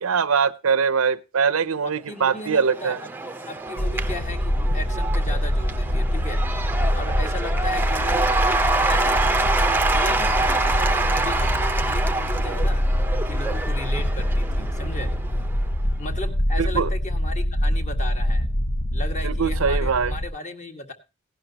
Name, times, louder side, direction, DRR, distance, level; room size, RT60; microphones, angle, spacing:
voice 1, 0.0-3.0 16.6-16.9 19.2-20.1, right 6 dB, 75° right, 0.6 m, -22 dB
voice 2, 1.8-8.3 8.9-12.8 13.3-15.1 16.0-18.5 18.9-20.9, left 2 dB, 35° left, 1.7 m, -36 dB
Cheering / Applause / Crowd, 2.2-15.7, right 3 dB, 10° right, 0.6 m, -26 dB
sound 1, 3.8-20.3, equal, 75° left, 1.3 m, -24 dB
16.5 x 11.0 x 2.9 m
head